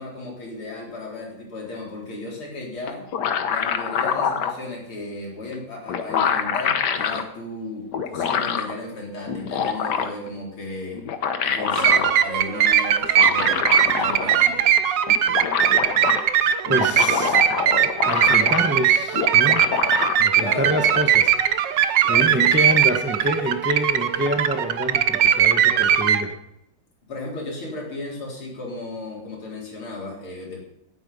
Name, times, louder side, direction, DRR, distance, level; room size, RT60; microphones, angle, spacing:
voice 1, 0.0-3.1 3.5-11.0 11.5-14.7 20.4-21.1 22.0-22.3 27.1-30.6, left 2 dB, 85° left, -2 dB, 4.8 m, -34 dB
sound 1, 2.9-4.6 5.5-5.6 5.9-7.2 7.9-8.7 9.3-10.3 10.9-12.1 13.0-14.5 14.8-14.9 15.1-16.2 16.6-18.8 19.1-20.1, left 7 dB, 60° left, 1.5 m, -25 dB
sound 2, 11.8-26.2, right 9 dB, 65° right, 1.4 m, -20 dB
voice 2, 16.7-17.5 17.8-19.7 20.2-21.2 21.5-26.3, equal, 10° right, 6 dB, 0.5 m, -27 dB
17.0 x 9.2 x 5.5 m, 0.84 s
omnidirectional pair, 2.3 m